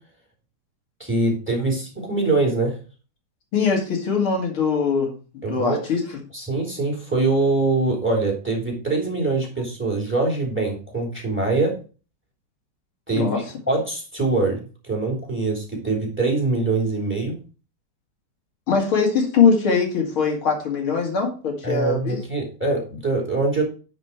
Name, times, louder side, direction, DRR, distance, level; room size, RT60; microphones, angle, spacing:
voice 1, 1.0-2.8 5.4-5.8 6.3-11.7 13.1-13.3 13.7-17.4 21.6-23.6, right 3 dB, 5° right, 0 dB, 3.2 m, -23 dB
voice 2, 3.5-5.1 5.5-6.2 13.1-13.4 18.7-22.2, left 5 dB, 90° left, 0 dB, 3.2 m, -21 dB
9.9 x 5.1 x 4.6 m, 0.35 s
omnidirectional pair, 2.2 m